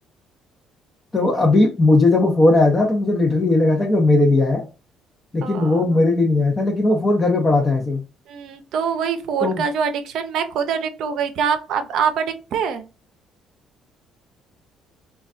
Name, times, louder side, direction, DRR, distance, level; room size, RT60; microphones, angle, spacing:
voice 1, 1.1-4.6 5.3-8.0 9.4-9.6, left 2 dB, 20° left, 0 dB, 0.6 m, -17 dB
voice 2, 5.4-6.0 8.3-12.8, right 7 dB, 70° right, 8 dB, 0.5 m, -24 dB
3.1 x 2.3 x 2.5 m, 0.31 s
cardioid pair, 105°, 0 cm